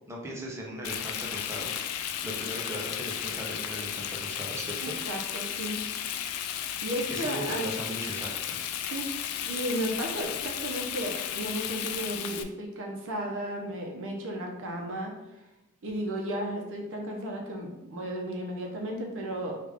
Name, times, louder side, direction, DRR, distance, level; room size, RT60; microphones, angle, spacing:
voice 1, 0.1-1.7 2.2-4.9 7.1-8.6, equal, 15° right, -3 dB, 0.5 m, -38 dB
Frying (food), 0.8-12.4, left 9 dB, 90° left, 0.3 m, -34 dB
voice 2, 4.8-5.8 6.8-7.7 8.9-15.1 15.8-19.6, right 1 dB, 65° right, 1 dB, 0.7 m, -34 dB
3.5 x 2.4 x 3.5 m, 0.94 s
head